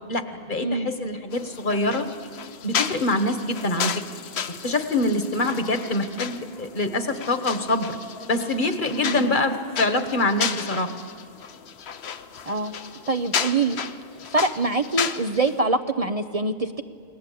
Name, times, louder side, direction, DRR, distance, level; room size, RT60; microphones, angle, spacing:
voice 1, 0.1-2.1 2.6-3.9 4.6-8.0 8.3-10.9, left 2 dB, 50° left, 8 dB, 1.5 m, -25 dB
voice 2, 0.6-0.9 9.0-9.3 12.5-12.7 13.1-13.8 14.3-16.8, right 3 dB, 40° right, 8 dB, 0.7 m, -24 dB
sound 1, 1.3-15.6, left 7 dB, 85° left, 1.1 m, -33 dB
29.0 x 20.0 x 8.5 m, 2.2 s
omnidirectional pair, 1.1 m